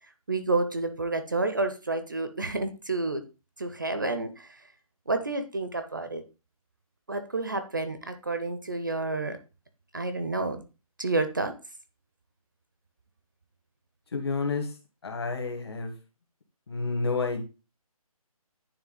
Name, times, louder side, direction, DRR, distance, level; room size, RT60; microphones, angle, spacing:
voice 1, 0.3-3.2 3.6-4.6 5.1-6.2 7.1-9.4 9.9-10.6 11.0-11.6, right 2 dB, 35° right, 10 dB, 0.5 m, -29 dB
voice 2, 14.1-14.7 15.0-15.9 16.7-17.4, left 4 dB, 45° left, 4 dB, 1.5 m, -29 dB
9.7 x 3.3 x 3.9 m, 0.30 s
hypercardioid pair, 175°, 19 cm